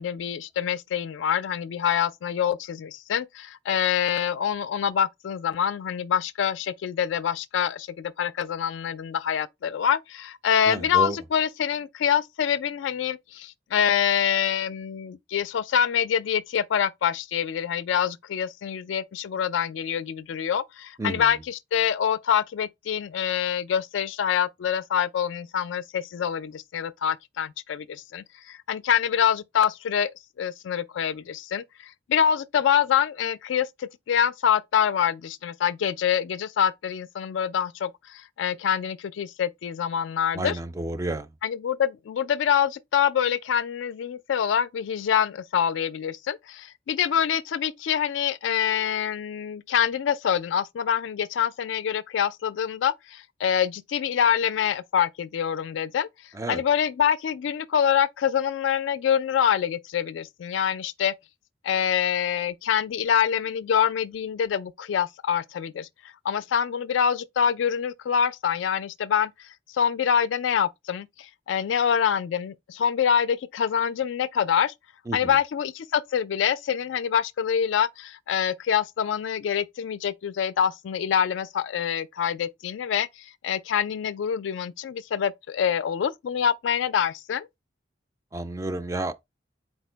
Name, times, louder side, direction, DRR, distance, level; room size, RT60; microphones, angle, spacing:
voice 1, 0.0-30.1 30.4-40.6 41.4-56.1 56.5-61.1 61.6-65.9 66.2-69.3 69.7-74.7 75.1-87.5, left 8 dB, 75° left, 0.3 m, -25 dB
voice 2, 10.7-11.2 21.0-21.2 40.3-41.3 56.3-56.6 75.1-75.3 88.3-89.2, right 2 dB, 15° right, 0.3 m, -30 dB
4.4 x 2.1 x 4.3 m
head